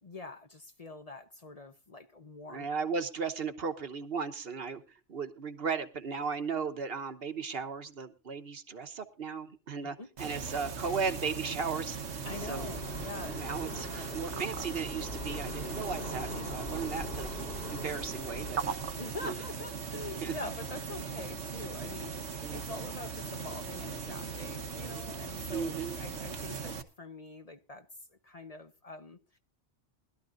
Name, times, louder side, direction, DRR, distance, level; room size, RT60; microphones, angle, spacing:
voice 1, 0.0-2.7 9.8-10.1 12.2-14.5 19.0-27.9 28.2-29.4, left 2 dB, 35° left, 0.9 m, -45 dB
voice 2, 2.5-12.7 13.3-17.3 17.7-18.7 19.2-19.4 20.2-20.3 22.4-22.7 25.5-26.0, right 5 dB, 60° right, 1.3 m, -36 dB
sound 1, 10.2-26.8, right 5 dB, 80° right, 1.5 m, -39 dB
sound 2, 12.2-18.5, left 2 dB, 55° left, 2.4 m, -42 dB
20.5 x 12.5 x 2.5 m
omnidirectional pair, 1.1 m